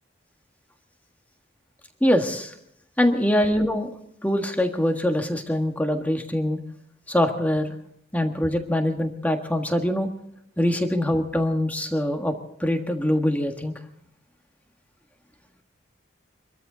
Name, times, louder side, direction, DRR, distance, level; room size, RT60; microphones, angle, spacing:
voice 1, 2.0-2.5 3.0-3.9 4.2-6.6 7.1-7.7 8.1-10.1 10.6-13.7, left 1 dB, 10° left, 4 dB, 1.5 m, -23 dB
25.5 x 13.5 x 4.0 m, 0.73 s
head